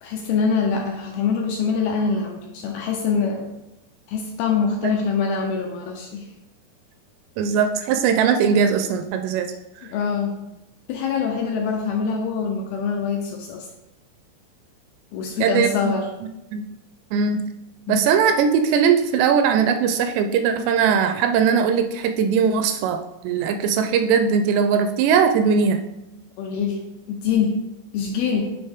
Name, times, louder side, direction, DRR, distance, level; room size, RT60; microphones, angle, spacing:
voice 1, 0.0-3.5 4.1-6.3 9.8-10.4 10.9-13.7 15.1-16.1 17.9-18.1 26.4-26.8 27.1-27.6 27.9-28.5, left 5 dB, 80° left, 1 dB, 2.3 m, -24 dB
voice 2, 7.4-9.5 15.4-15.9 16.5-16.7 17.1-17.4 17.9-25.8, right 6 dB, 85° right, 7 dB, 2.5 m, -20 dB
8.6 x 5.0 x 3.5 m, 0.93 s
omnidirectional pair, 5.0 m